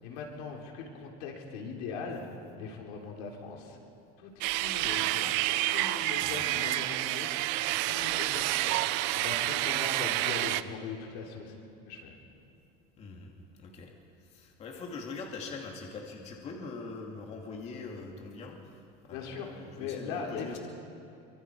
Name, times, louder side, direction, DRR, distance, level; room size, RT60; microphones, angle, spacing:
voice 1, 0.0-2.2 2.6-3.8 4.2-4.3 4.6-5.4 5.7-7.5 7.8-8.8 9.1-11.6 11.9-12.1 19.1-20.6, left 5 dB, 85° left, 1 dB, 3.7 m, -40 dB
sound 1, 4.4-10.6, right 16 dB, 65° right, 0.7 m, -29 dB
voice 2, 13.0-13.9 14.2-18.6 19.0-20.6, left 4 dB, 35° left, 1 dB, 2.4 m, -43 dB
25.0 x 25.0 x 4.8 m, 2.8 s
cardioid pair, 160°, 19 cm